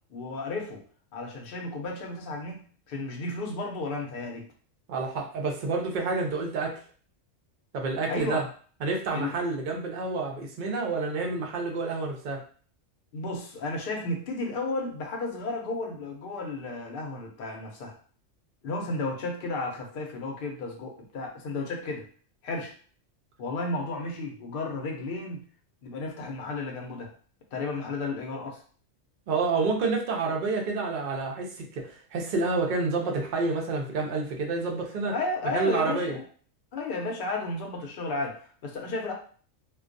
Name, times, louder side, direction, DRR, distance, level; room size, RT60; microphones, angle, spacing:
voice 1, 0.1-0.8 1.1-4.5 8.1-8.4 9.1-9.3 13.1-17.9 18.6-22.1 22.4-22.7 23.4-25.4 25.8-27.1 27.5-28.6 35.1-36.2 36.7-39.1, left 2 dB, 55° left, 1 dB, 0.7 m, -33 dB
voice 2, 4.9-6.8 7.7-8.4 8.8-12.4 29.3-35.1 35.5-36.2, right 3 dB, 55° right, 1 dB, 0.5 m, -29 dB
2.3 x 2.2 x 2.5 m, 0.44 s
omnidirectional pair, 1.3 m